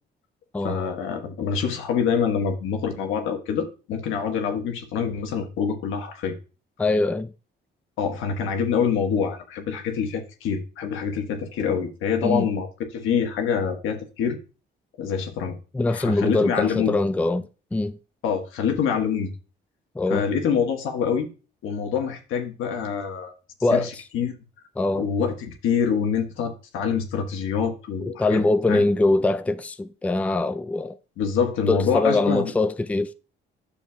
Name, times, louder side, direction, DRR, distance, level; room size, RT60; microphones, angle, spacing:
voice 1, 0.6-6.3 8.0-12.7 12.9-14.4 15.0-15.6 15.9-17.0 18.2-19.3 20.1-21.3 21.6-23.3 23.7-24.3 25.0-28.4 28.7-28.8 31.2-32.5, left 6 dB, 90° left, 1.4 m, -25 dB
voice 2, 6.8-7.3 12.2-12.5 15.7-18.0 20.0-20.3 23.6-23.9 24.8-25.1 28.0-30.9 31.7-33.1, left 2 dB, 5° left, 0.4 m, -23 dB
10.0 x 6.8 x 2.3 m
cardioid pair, 90°, 20 cm